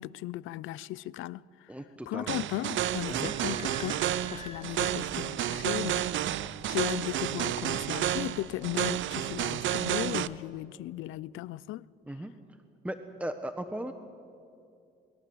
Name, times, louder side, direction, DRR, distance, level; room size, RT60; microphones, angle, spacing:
voice 1, 0.0-1.7 2.1-11.9, left 15 dB, 90° left, 0.5 m, -37 dB
voice 2, 1.7-2.4 3.1-3.3 12.1-12.3 12.8-13.9, right 1 dB, 5° right, 1.3 m, -37 dB
sound 1, 2.3-10.3, right 12 dB, 75° right, 0.7 m, -31 dB
sound 2, 2.8-10.4, left 2 dB, 20° left, 1.2 m, -53 dB
Idling / Squeak, 2.9-9.3, right 2 dB, 30° right, 3.1 m, -51 dB
28.0 x 21.5 x 8.0 m
cardioid pair, 90°, 20 cm